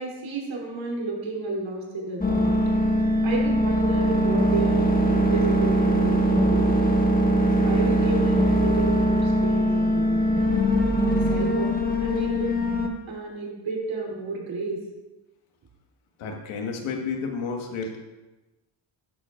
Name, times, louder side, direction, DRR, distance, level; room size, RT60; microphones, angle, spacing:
voice 1, 0.0-2.6 3.2-6.9 7.5-10.4 11.0-12.6 13.1-14.8, right 3 dB, 70° right, -2 dB, 3.2 m, -32 dB
sound 1, 2.2-12.9, equal, 20° left, 1.5 m, -21 dB
voice 2, 16.2-18.0, left 5 dB, 85° left, 2 dB, 1.6 m, -31 dB
12.0 x 10.0 x 2.5 m, 1.1 s
cardioid pair, 80°, 48 cm